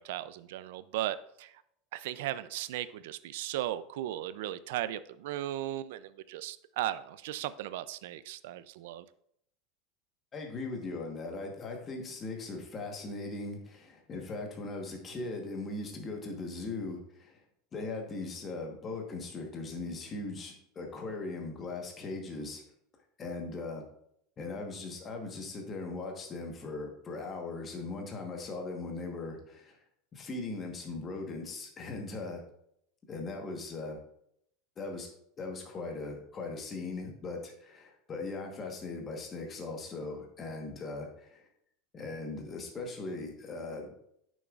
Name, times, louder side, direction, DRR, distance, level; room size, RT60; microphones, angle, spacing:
voice 1, 0.0-1.5 1.9-9.0, right 13 dB, 75° right, 15 dB, 0.4 m, -36 dB
voice 2, 10.3-17.4 17.7-22.6 23.2-23.9 24.4-29.8 30.1-32.4 33.1-34.0 34.8-35.1 35.4-41.5 41.9-43.9, left 3 dB, 20° left, 2 dB, 1.2 m, -39 dB
8.8 x 6.3 x 2.4 m, 0.71 s
supercardioid pair, 160°, 0 cm